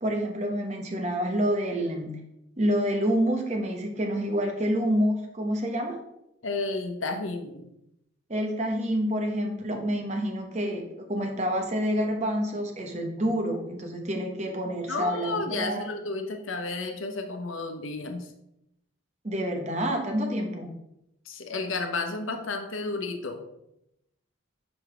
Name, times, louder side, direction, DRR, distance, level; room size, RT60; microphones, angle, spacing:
voice 1, 0.0-2.2 2.6-6.0 8.3-15.8 19.2-20.7, equal, 35° right, 3 dB, 0.9 m, -28 dB
voice 2, 6.4-7.6 14.9-18.3 21.3-23.4, left 3 dB, 75° left, 5 dB, 0.9 m, -32 dB
5.2 x 5.0 x 4.9 m, 0.84 s
head